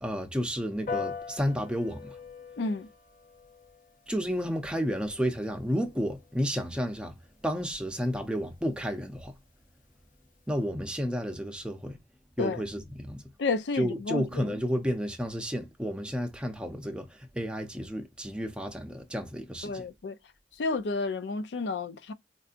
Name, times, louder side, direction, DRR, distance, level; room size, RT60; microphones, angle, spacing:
voice 1, 0.0-2.2 4.1-7.2 7.4-9.3 10.5-12.0 12.4-13.2 13.7-19.8, equal, 5° right, 0.5 m, -31 dB
Piano, 0.9-10.6, left 5 dB, 50° left, 0.7 m, -44 dB
voice 2, 2.6-2.9 12.4-12.6 13.4-14.5 19.6-20.2 20.6-22.1, left 3 dB, 80° left, 0.5 m, -31 dB
4.5 x 2.7 x 2.4 m
head